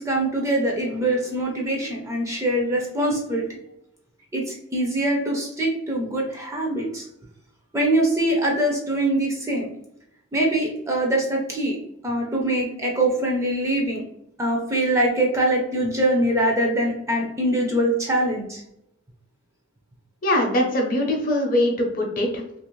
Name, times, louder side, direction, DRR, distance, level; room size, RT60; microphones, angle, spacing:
voice 1, 0.0-3.4 4.3-7.1 7.7-9.7 10.3-11.8 12.0-14.0 14.4-18.6, right 1 dB, 15° right, -1 dB, 0.5 m, -23 dB
voice 2, 20.2-22.4, left 1 dB, 45° left, 2 dB, 0.6 m, -22 dB
2.9 x 2.5 x 3.0 m, 0.79 s
head